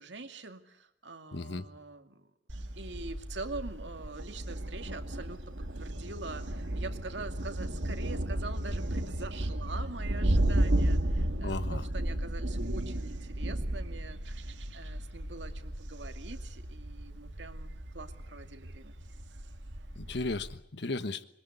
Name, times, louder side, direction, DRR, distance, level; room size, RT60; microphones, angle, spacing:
voice 1, 0.0-2.3 2.8-5.4 5.8-14.4 14.7-18.9, right 3 dB, 70° right, 7 dB, 2.4 m, -44 dB
voice 2, 1.3-1.7 11.4-11.8 20.0-21.2, left 2 dB, 65° left, 13 dB, 1.3 m, -35 dB
Thunder, 2.5-20.6, right 1 dB, 90° right, 2.1 m, -33 dB
26.0 x 22.5 x 8.4 m, 0.78 s
head